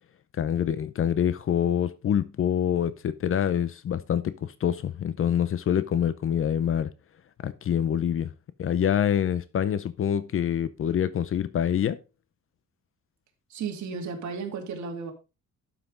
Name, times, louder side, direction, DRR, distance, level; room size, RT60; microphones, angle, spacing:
voice 1, 0.4-6.9 7.4-8.3 8.6-12.0, left 9 dB, 45° left, 0.6 m, -26 dB
voice 2, 13.5-15.1, right 5 dB, 70° right, 2.5 m, -34 dB
12.0 x 5.8 x 3.8 m
cardioid pair, 150°, 29 cm